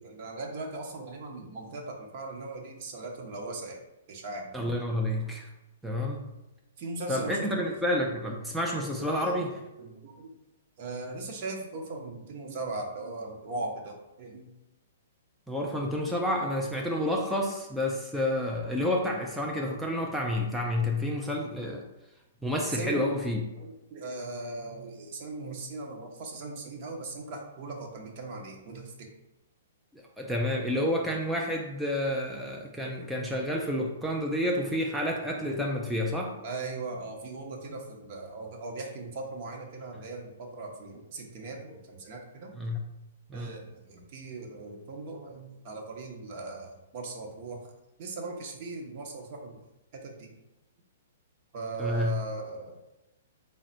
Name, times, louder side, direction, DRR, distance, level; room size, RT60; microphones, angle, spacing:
voice 1, 0.0-3.8 4.1-4.6 6.8-7.5 8.8-10.3 10.8-14.5 16.8-17.0 22.7-23.1 23.6-29.1 35.2-35.6 36.2-42.5 43.3-47.7 48.0-49.6 49.9-50.4 51.5-52.8, right 3 dB, 45° right, 1 dB, 0.8 m, -39 dB
voice 2, 4.5-5.5 5.8-6.3 7.1-9.5 15.5-21.8 22.4-23.4 29.9-36.3 42.6-42.8 43.3-43.5 51.8-52.2, left 1 dB, ahead, -2 dB, 0.4 m, -29 dB
4.0 x 2.1 x 3.9 m, 0.95 s
figure-of-eight pair, 115°, 0 cm